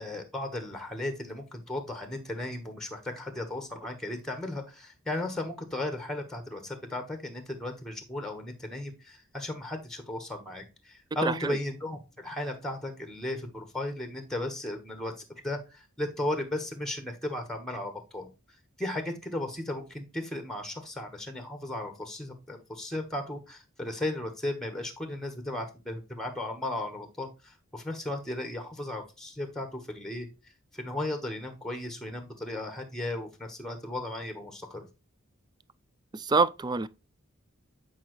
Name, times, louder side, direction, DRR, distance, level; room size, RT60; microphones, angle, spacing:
voice 1, 0.0-15.1 15.4-18.3 18.8-30.3 30.7-34.9, left 1 dB, 5° left, 1.1 m, -35 dB
voice 2, 11.2-11.6 36.1-36.9, right 4 dB, 20° right, 0.3 m, -26 dB
8.5 x 5.0 x 3.0 m
head